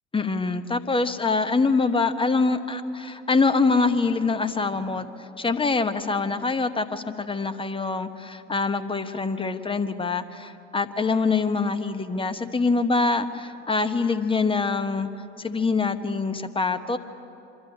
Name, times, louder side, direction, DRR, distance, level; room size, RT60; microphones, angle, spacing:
voice 1, 0.1-5.1 5.4-15.1 15.4-17.0, left 4 dB, 15° left, 9 dB, 1.1 m, -24 dB
25.0 x 12.5 x 9.9 m, 2.9 s
figure-of-eight pair, 65°, 36 cm